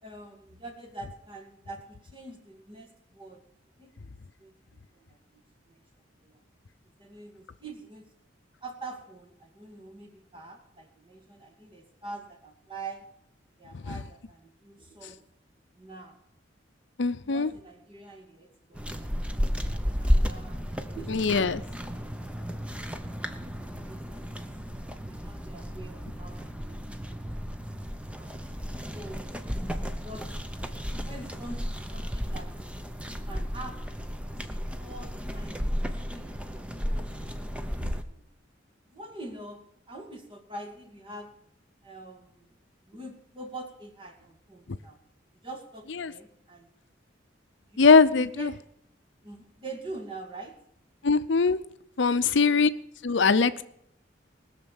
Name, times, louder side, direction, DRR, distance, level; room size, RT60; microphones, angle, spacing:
voice 1, 0.0-3.4 3.8-4.1 4.4-4.5 4.9-5.4 5.7-5.8 6.2-6.4 6.9-8.1 8.6-13.1 13.6-15.2 15.7-16.2 17.2-21.5 23.8-24.4 25.1-27.6 28.2-28.3 28.9-29.3 30.0-30.4 31.0-32.6 33.1-33.8 34.2-37.3 37.7-38.2 38.9-39.6 39.9-41.3 41.8-42.5 42.9-45.0 45.4-46.8 47.7-47.8 48.1-48.5 49.2-50.6 52.2-52.7, right 2 dB, 25° right, 4 dB, 2.3 m, -45 dB
voice 2, 17.0-17.5 21.1-21.6 46.0-46.1 47.8-48.5 51.0-51.6 52.0-52.7 53.0-53.6, left 4 dB, 65° left, 13 dB, 0.6 m, -21 dB
sound 1, 18.7-38.0, equal, 5° right, 0.8 m, -33 dB
19.5 x 6.7 x 7.1 m, 0.72 s
head